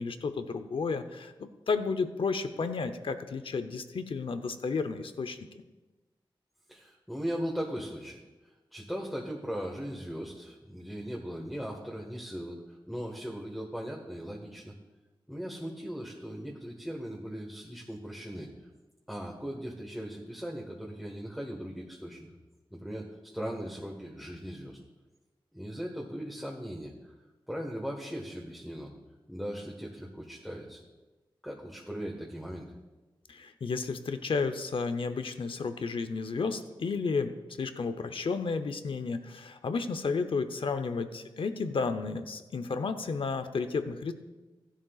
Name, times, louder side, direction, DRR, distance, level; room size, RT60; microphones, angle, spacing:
voice 1, 0.0-5.4 33.3-44.1, left 4 dB, 70° left, 10 dB, 0.8 m, -32 dB
voice 2, 6.7-8.2 8.7-14.7 15.3-18.5 19.1-22.3 22.7-24.8 25.5-26.9 27.5-28.9 29.3-30.8 31.4-32.7, equal, ahead, -2 dB, 1.5 m, -38 dB
15.5 x 11.5 x 2.4 m, 1.2 s
wide cardioid pair, 75°, 9 cm